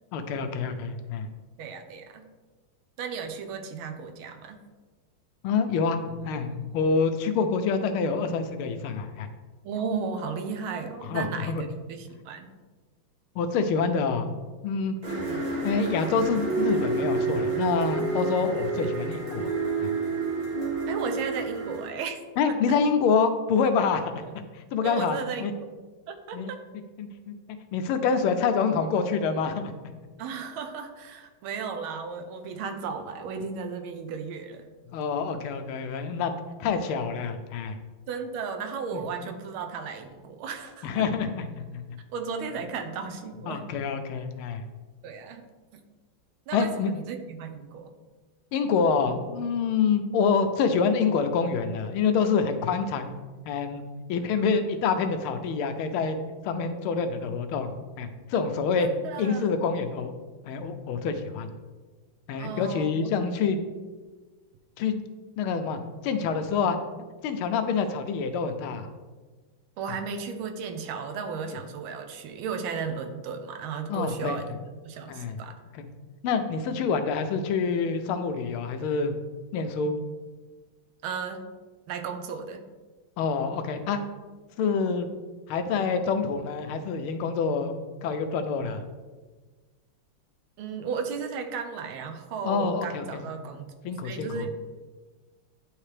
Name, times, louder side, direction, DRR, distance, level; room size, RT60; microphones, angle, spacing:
voice 1, 0.1-1.3 5.4-9.3 11.1-11.6 13.4-14.3 14.6-14.9 15.6-19.5 19.8-19.9 22.4-24.1 24.5-25.5 26.3-26.5 27.0-27.3 27.7-29.7 34.9-36.3 36.6-37.8 38.9-39.0 40.8-42.0 43.5-44.6 46.5-46.9 48.5-53.1 53.5-53.8 54.1-56.2 56.4-58.9 59.2-60.1 60.5-61.5 62.3-63.6 64.8-65.0 65.4-66.8 67.2-68.9 71.5-71.6 73.9-74.4 75.1-75.4 75.7-75.9 76.2-79.1 79.5-79.9 83.2-84.0 84.6-85.1 85.5-87.7 88.0-88.8 92.4-93.2 93.8-94.5, left 5 dB, 90° left, 8 dB, 1.5 m, -27 dB
voice 2, 1.6-2.2 3.0-4.6 9.6-12.5 15.2-15.5 20.9-22.8 24.2-24.3 24.8-25.7 26.1-26.6 30.2-34.7 38.1-41.1 42.1-43.6 45.0-45.4 46.5-47.9 58.8-59.6 62.4-63.1 69.8-74.5 74.8-75.6 81.0-81.4 81.9-82.6 90.6-93.7 94.0-94.5, right 5 dB, 80° right, 6 dB, 1.5 m, -35 dB
sound 1, 15.0-21.8, right 4 dB, 50° right, 2.7 m, -29 dB
9.5 x 3.3 x 3.2 m, 1.3 s
omnidirectional pair, 2.3 m